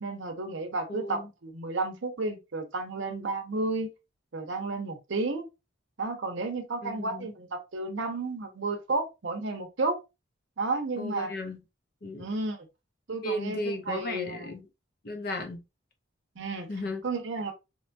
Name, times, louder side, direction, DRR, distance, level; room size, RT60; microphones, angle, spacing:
voice 1, 0.0-3.9 4.3-5.5 6.0-10.0 10.6-11.3 12.2-12.7 13.1-14.5 16.4-16.7 17.0-17.5, right 3 dB, 70° right, 0.6 m, -32 dB
voice 2, 0.9-1.3 6.8-7.3 11.0-11.6 12.0-12.3 13.2-14.7 15.0-15.6 16.7-17.0, left 1 dB, 50° left, 0.6 m, -35 dB
3.1 x 2.2 x 2.5 m
head